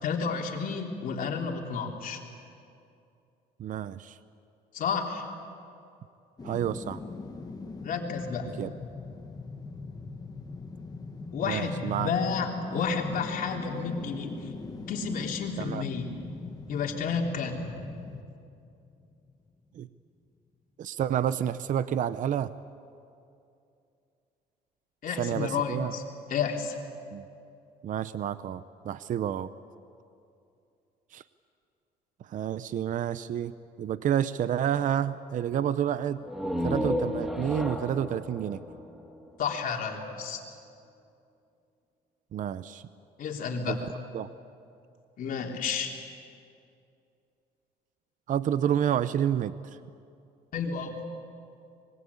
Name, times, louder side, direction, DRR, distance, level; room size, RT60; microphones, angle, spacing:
voice 1, 0.0-2.2 4.7-5.3 7.8-8.5 11.3-14.5 14.9-16.0 16.7-17.7 25.0-26.0 26.3-26.8 39.4-40.4 43.2-43.8 45.2-46.0 50.5-51.0, left 5 dB, 55° left, 1 dB, 3.5 m, -31 dB
voice 2, 3.6-4.2 6.4-7.0 8.6-8.7 11.4-12.1 15.6-15.8 19.8-19.9 20.8-22.5 25.2-25.9 27.1-27.3 27.8-29.5 31.1-31.2 32.3-36.2 36.6-38.6 42.3-42.8 43.7-43.8 44.1-44.3 48.3-49.8, right 10 dB, 50° right, 14 dB, 0.7 m, -29 dB
sound 1, 6.4-19.4 19.8-19.9, left 3 dB, 20° left, 1.8 m, -41 dB
sound 2, 36.2-39.9, left 1 dB, ahead, 2.2 m, -33 dB
25.0 x 22.0 x 8.5 m, 2.5 s
cardioid pair, 110°, 17 cm